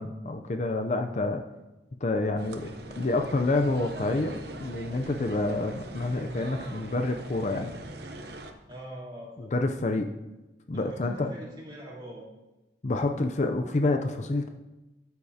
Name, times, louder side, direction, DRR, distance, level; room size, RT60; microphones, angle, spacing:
voice 1, 0.0-1.4 2.0-2.7 3.0-7.7 9.4-10.1 10.7-11.3 12.8-14.5, left 2 dB, 40° left, 5 dB, 0.5 m, -28 dB
sound 1, 2.4-8.5, right 2 dB, 65° right, 0.9 m, -42 dB
voice 2, 8.7-9.5 10.7-12.3, right 1 dB, 25° right, -5 dB, 3.1 m, -42 dB
13.5 x 8.2 x 2.8 m, 1.0 s
head